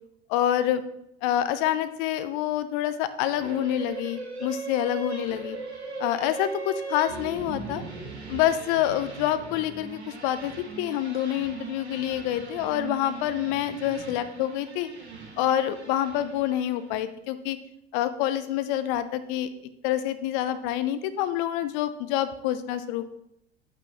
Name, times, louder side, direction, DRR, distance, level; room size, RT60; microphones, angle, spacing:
voice 1, 0.3-0.8 1.2-5.6 6.0-7.8 8.3-14.9 15.4-17.6 17.9-19.5 19.8-23.1, left 12 dB, 50° left, 12 dB, 0.8 m, -27 dB
sound 1, 3.3-16.9, right 4 dB, 85° right, 1.4 m, -39 dB
9.1 x 9.0 x 3.1 m, 0.78 s
figure-of-eight pair, 70°, 32 cm